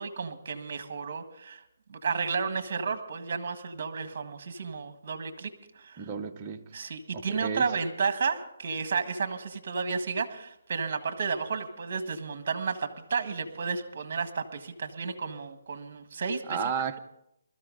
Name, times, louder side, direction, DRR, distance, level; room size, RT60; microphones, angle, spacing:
voice 1, 0.0-1.6 1.9-5.5 5.7-6.1 6.7-16.6, right 5 dB, 45° right, 1.6 m, -32 dB
voice 2, 6.0-6.7 7.1-7.7 16.5-17.0, right 6 dB, 20° right, 0.8 m, -33 dB
21.0 x 13.5 x 3.9 m
hypercardioid pair, 165°, 0 cm